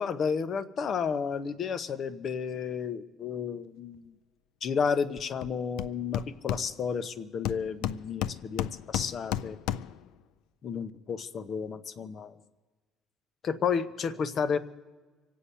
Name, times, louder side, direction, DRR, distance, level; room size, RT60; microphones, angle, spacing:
voice 1, 0.0-4.1 4.6-9.6 10.6-12.3 13.4-14.6, left 6 dB, 45° left, 13 dB, 0.9 m, -32 dB
Hammer, 5.4-5.5 5.8-7.1 7.4-10.1, left 11 dB, 85° left, 0.4 m, -33 dB
25.5 x 8.5 x 5.6 m, 1.3 s
cardioid pair, 110°, 0 cm